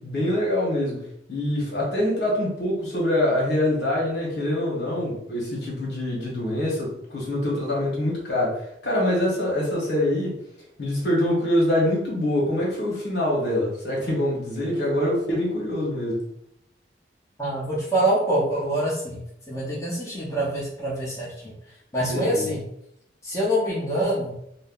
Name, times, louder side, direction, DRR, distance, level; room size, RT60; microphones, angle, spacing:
voice 1, 0.0-10.3 10.8-16.2 22.0-22.5, left 1 dB, 60° left, -4 dB, 1.2 m, -25 dB
voice 2, 17.4-19.2 19.5-21.5 21.9-22.6 23.2-24.3, right 1 dB, 15° left, -7 dB, 0.8 m, -25 dB
2.6 x 2.1 x 3.8 m, 0.76 s
head